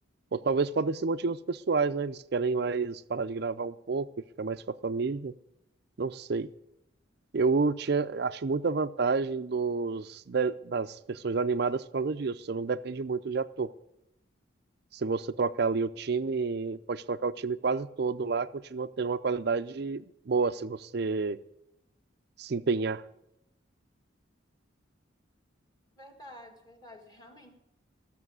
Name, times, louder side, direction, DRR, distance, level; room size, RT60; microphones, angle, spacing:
voice 1, 0.3-4.1 4.4-5.3 6.0-6.5 7.3-13.7 14.9-21.4 22.4-23.0, right 4 dB, 55° right, 14 dB, 0.5 m, -29 dB
voice 2, 26.0-27.5, left 1 dB, 20° left, 3 dB, 1.7 m, -50 dB
15.0 x 6.9 x 9.5 m, 0.85 s
head